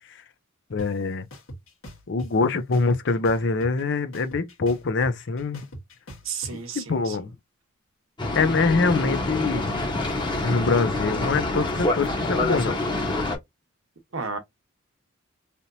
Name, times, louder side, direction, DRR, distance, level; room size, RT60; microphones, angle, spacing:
voice 1, 0.7-1.3 2.1-5.6 6.5-7.3 8.3-9.7 10.4-12.8, left 4 dB, 60° left, 0.6 m, -24 dB
sound 1, 0.8-0.9 1.3-2.3 2.7-3.8 4.1-6.5, equal, 90° left, 1.7 m, -41 dB
voice 2, 6.2-7.3 14.1-14.4, right 5 dB, 80° right, 1.0 m, -33 dB
Boat Water vehicle, 8.2-13.4, left 2 dB, 25° left, 1.0 m, -26 dB
3.4 x 2.8 x 2.7 m
head